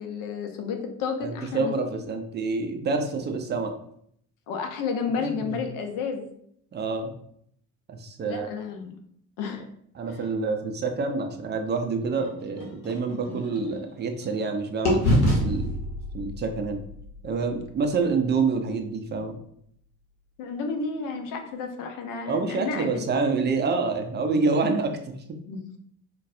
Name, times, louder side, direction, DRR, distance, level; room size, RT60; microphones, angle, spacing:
voice 1, 0.0-1.8 4.5-6.3 8.2-9.0 9.4-9.6 10.1-10.2 20.4-23.1 25.5-25.8, left 5 dB, 50° left, 5 dB, 0.7 m, -31 dB
voice 2, 1.2-3.7 5.5-5.6 6.7-7.1 7.9-8.5 10.0-15.7 16.1-16.8 17.2-19.4 22.3-25.4, right 4 dB, 25° right, 5 dB, 0.5 m, -27 dB
sound 1, 12.1-14.5 14.8-18.8, left 1 dB, 85° left, 0.8 m, -28 dB
3.9 x 2.2 x 2.5 m, 0.68 s
figure-of-eight pair, 50°, 43 cm